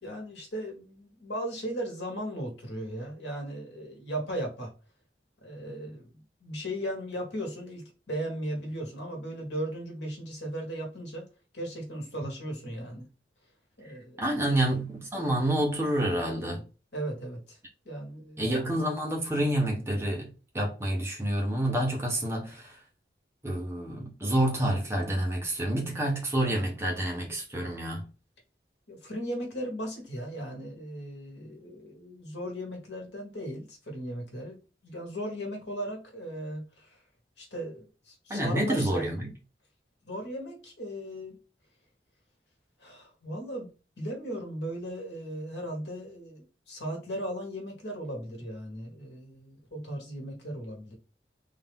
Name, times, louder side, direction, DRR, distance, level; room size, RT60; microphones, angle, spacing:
voice 1, 0.0-4.7 5.4-6.1 6.4-11.3 11.5-13.1 13.8-14.2 16.9-17.6 17.8-18.5 28.9-34.6 34.8-36.9 37.4-39.1 40.0-41.4 42.8-43.7 44.0-51.0, right 1 dB, 85° left, 1.6 m, -37 dB
voice 2, 14.2-16.6 18.4-22.8 23.4-28.1 38.3-39.3, right 1 dB, 15° right, 1.0 m, -28 dB
3.9 x 2.8 x 3.6 m
head